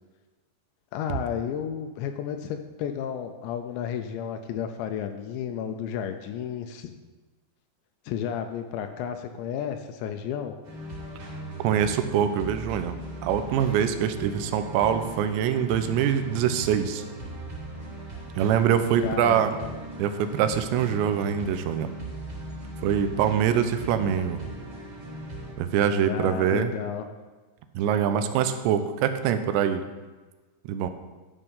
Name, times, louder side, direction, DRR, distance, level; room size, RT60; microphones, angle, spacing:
voice 1, 0.9-6.9 8.1-10.6 19.0-19.7 26.0-27.1, left 8 dB, 85° left, 7 dB, 2.7 m, -32 dB
sound 1, 10.6-25.5, right 1 dB, 35° right, 3.3 m, -38 dB
voice 2, 11.6-13.0 13.2-17.0 18.4-19.5 20.0-21.9 22.8-24.4 25.6-26.7 27.8-29.9 30.7-30.9, right 9 dB, 80° right, 9 dB, 2.8 m, -24 dB
12.0 x 5.6 x 5.5 m, 1.3 s
omnidirectional pair, 5.3 m